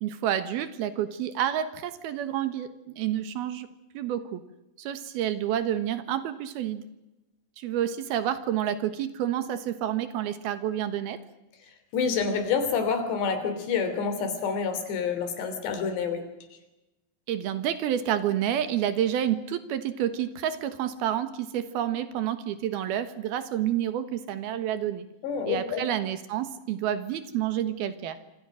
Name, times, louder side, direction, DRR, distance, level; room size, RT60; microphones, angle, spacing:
voice 1, 0.0-3.7 3.9-4.4 4.8-6.8 7.6-11.2 17.3-25.0 25.5-28.2, right 10 dB, 70° right, 11 dB, 3.1 m, -29 dB
voice 2, 11.9-16.2 25.2-25.8, left 6 dB, 85° left, 8 dB, 5.4 m, -28 dB
26.5 x 26.0 x 6.3 m, 0.98 s
omnidirectional pair, 4.8 m